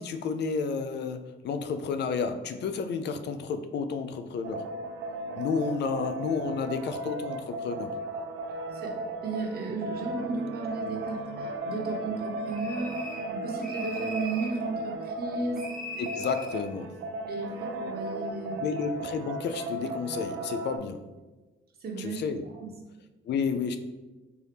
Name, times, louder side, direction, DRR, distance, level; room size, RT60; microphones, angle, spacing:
voice 1, 0.0-4.7 5.4-7.9 16.0-17.0 18.6-21.1 22.0-22.4 23.3-23.8, left 5 dB, 60° left, 8 dB, 0.4 m, -31 dB
sound 1, 4.4-20.8, right 2 dB, 80° right, 0.4 m, -36 dB
voice 2, 8.7-13.0 13.3-15.7 17.3-18.6 21.8-22.7, right 3 dB, 50° right, 0 dB, 1.0 m, -34 dB
sound 2, 12.5-13.3 13.6-14.6 15.6-16.6, equal, ahead, 1.0 m, -40 dB
4.5 x 2.7 x 3.4 m, 1.2 s
cardioid pair, 90°, 20 cm